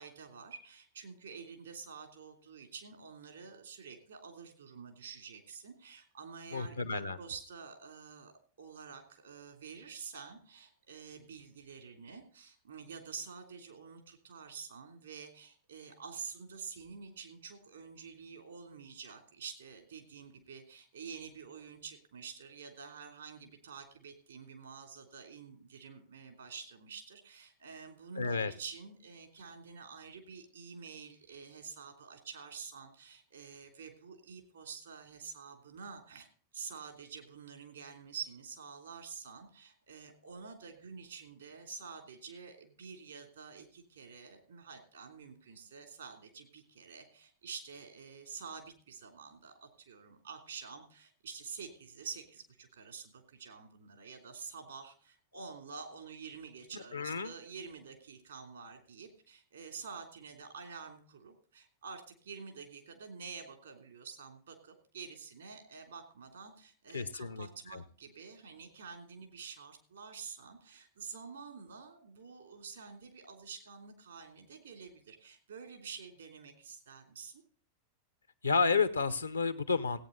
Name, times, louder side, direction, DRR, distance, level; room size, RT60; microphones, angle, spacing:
voice 1, 0.0-8.3 8.6-36.3 36.5-77.4, right 5 dB, 75° right, 5 dB, 3.0 m, -48 dB
voice 2, 6.5-7.2 28.2-28.5 56.9-57.3 66.9-67.8 78.4-80.0, left 4 dB, 85° left, 13 dB, 0.8 m, -31 dB
17.0 x 8.9 x 4.0 m, 0.41 s
figure-of-eight pair, 90°, 0 cm